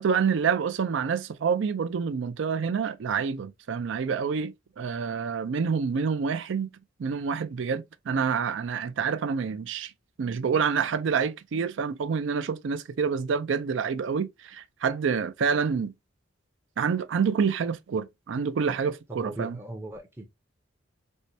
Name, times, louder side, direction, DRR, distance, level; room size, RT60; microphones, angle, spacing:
voice 1, 0.0-6.7 7.0-9.9 10.2-15.9 16.8-19.6, right 6 dB, 70° right, 0.4 m, -27 dB
voice 2, 19.1-20.3, right 1 dB, 10° right, 0.6 m, -39 dB
4.4 x 2.2 x 2.6 m
head